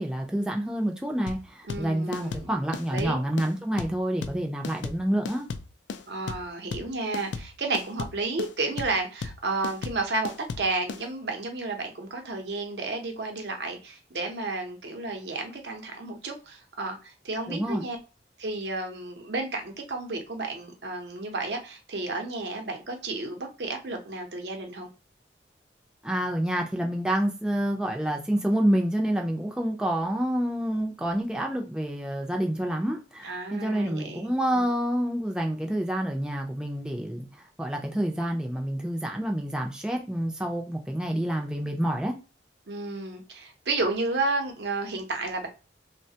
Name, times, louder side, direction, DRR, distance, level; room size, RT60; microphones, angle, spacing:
voice 1, 0.0-5.5 17.5-17.8 26.0-37.3 37.6-42.2, right 1 dB, 5° right, 0.4 m, -28 dB
sound 1, 1.3-11.0, left 4 dB, 80° left, 0.3 m, -36 dB
voice 2, 1.7-2.5 2.9-3.2 6.1-18.0 18.4-24.9 33.2-34.6 42.7-45.5, right 3 dB, 75° right, 0.7 m, -32 dB
3.2 x 2.2 x 2.7 m
head